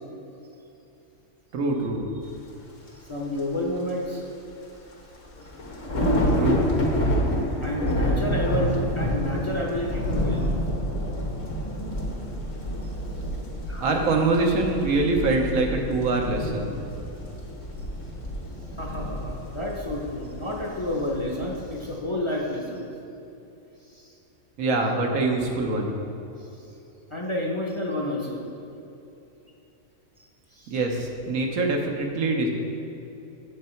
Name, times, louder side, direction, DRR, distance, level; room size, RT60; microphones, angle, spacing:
voice 1, 1.5-2.1 6.4-6.7 13.8-16.8 24.6-26.0 30.7-32.5, right 3 dB, 85° right, 1 dB, 1.4 m, -24 dB
sound 1, 2.9-3.0 3.4-3.5 4.9-5.0 5.2-21.9, equal, 65° left, 1.6 m, -28 dB
voice 2, 3.1-4.2 7.6-10.5 13.7-13.8 18.8-22.9 24.0-24.1 27.1-28.4 30.5-30.7, left 1 dB, 25° left, -2 dB, 0.7 m, -30 dB
7.7 x 6.7 x 4.4 m, 2.9 s
omnidirectional pair, 1.4 m